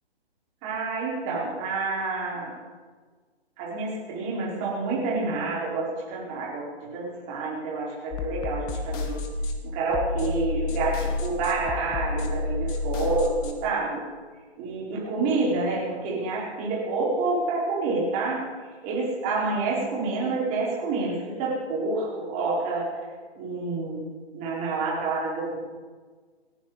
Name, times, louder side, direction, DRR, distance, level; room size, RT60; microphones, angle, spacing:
voice 1, 0.6-2.6 3.6-9.2 9.7-14.0 14.6-18.4 18.8-22.9 23.3-24.0 24.3-25.6, right 3 dB, 20° right, -5 dB, 5.1 m, -28 dB
sound 1, 8.1-13.5, left 3 dB, 15° left, 1.0 m, -30 dB
29.5 x 11.0 x 4.2 m, 1.5 s
figure-of-eight pair, 130°, 32 cm